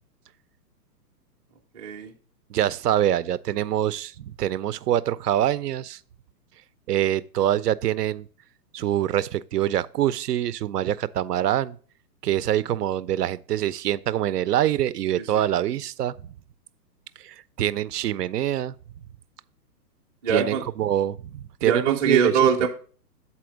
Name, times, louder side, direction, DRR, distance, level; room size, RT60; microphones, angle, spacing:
voice 1, 1.7-2.1 15.4-15.5 20.2-20.6 21.6-22.7, right 6 dB, 10° right, 0.5 m, -23 dB
voice 2, 2.5-6.0 6.9-8.3 8.7-11.8 12.2-16.1 17.2-18.7 20.3-22.7, right 12 dB, 70° right, 0.6 m, -25 dB
7.1 x 4.3 x 6.2 m
hypercardioid pair, 135°, 50 cm